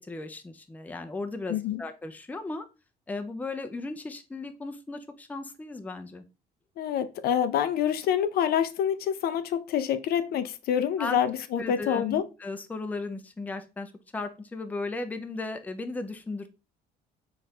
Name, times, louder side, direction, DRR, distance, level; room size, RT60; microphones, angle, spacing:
voice 1, 0.0-2.7 3.1-6.2 11.0-11.2 11.6-16.5, left 3 dB, 10° left, 0.4 m, -36 dB
voice 2, 1.5-1.8 6.8-12.2, left 9 dB, 65° left, 0.4 m, -27 dB
4.2 x 2.5 x 3.2 m
cardioid pair, 110°, 17 cm